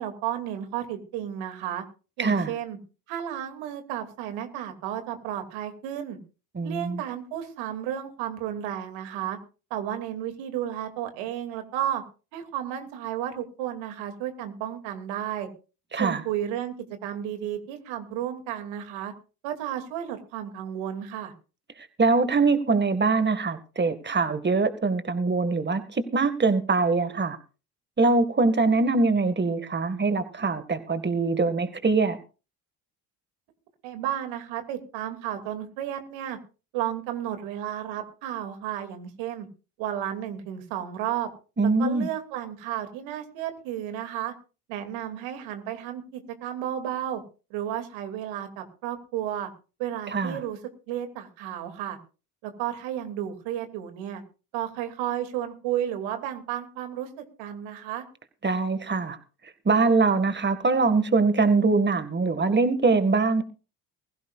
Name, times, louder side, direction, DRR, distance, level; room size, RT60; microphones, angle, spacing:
voice 1, 0.0-1.8 2.2-2.8 3.1-6.2 6.6-9.4 9.7-12.0 12.3-15.5 15.9-16.7 17.0-19.1 19.4-21.3 33.8-36.4 36.7-39.5 39.8-41.3 41.6-44.3 44.7-47.2 47.5-49.5 49.8-50.6 50.9-52.0 52.4-54.2 54.5-57.1 57.4-58.0, right 11 dB, 75° right, 2.7 m, -32 dB
voice 2, 2.2-2.5 6.5-7.0 15.9-16.2 22.0-27.4 28.0-32.2 41.6-42.1 50.1-50.4 58.4-59.2 59.7-63.4, right 3 dB, 25° right, 1.9 m, -23 dB
21.5 x 16.0 x 2.5 m
hypercardioid pair, 55°, 46 cm